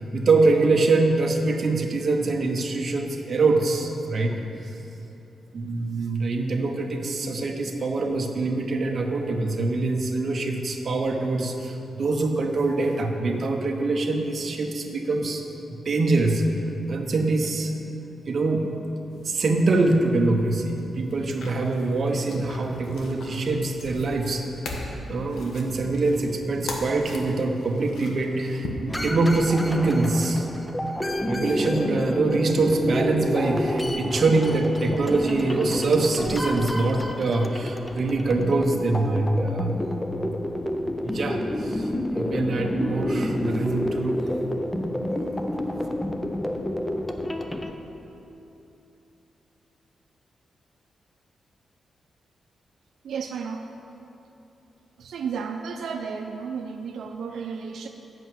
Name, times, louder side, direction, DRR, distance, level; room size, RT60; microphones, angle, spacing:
voice 1, 0.0-4.4 5.5-15.4 15.7-16.4 16.9-17.7 18.3-18.7 19.2-24.4 25.1-30.5 31.3-39.8 41.0-44.2 45.1-45.3 45.7-45.9, right 3 dB, 40° right, 2 dB, 0.8 m, -24 dB
sound 1, 19.1-28.7, left 2 dB, 80° left, 1.1 m, -40 dB
sound 2, 28.9-47.7, left 1 dB, 10° left, 0.4 m, -29 dB
voice 2, 53.0-53.7 55.0-57.9, right 6 dB, 85° right, 4 dB, 0.5 m, -33 dB
7.7 x 5.7 x 7.7 m, 2.9 s
wide cardioid pair, 165°, 0 cm